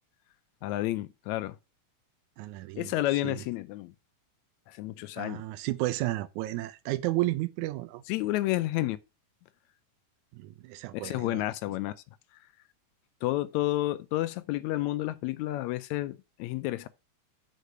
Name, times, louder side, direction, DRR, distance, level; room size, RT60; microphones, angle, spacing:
voice 1, 0.6-1.6 2.8-3.9 4.7-5.4 8.1-9.0 10.9-11.9 13.2-16.9, left 16 dB, 85° left, 1.6 m, -30 dB
voice 2, 2.4-2.9 3.2-3.4 5.2-8.0 10.3-11.5, right 17 dB, 80° right, 1.8 m, -32 dB
6.6 x 4.1 x 6.6 m
omnidirectional pair, 3.8 m